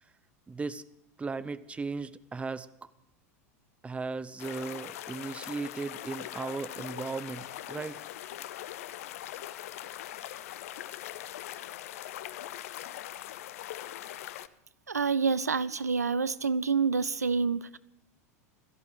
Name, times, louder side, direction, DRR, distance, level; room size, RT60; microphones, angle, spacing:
voice 1, 0.5-0.8 1.2-2.7 3.8-8.0, right 4 dB, 15° right, 15 dB, 0.8 m, -36 dB
sound 1, 4.4-14.5, left 13 dB, 65° left, 0.7 m, -41 dB
voice 2, 14.9-17.8, right 5 dB, 90° right, 18 dB, 0.6 m, -27 dB
16.5 x 13.5 x 6.2 m, 0.81 s
figure-of-eight pair, 85°, 8 cm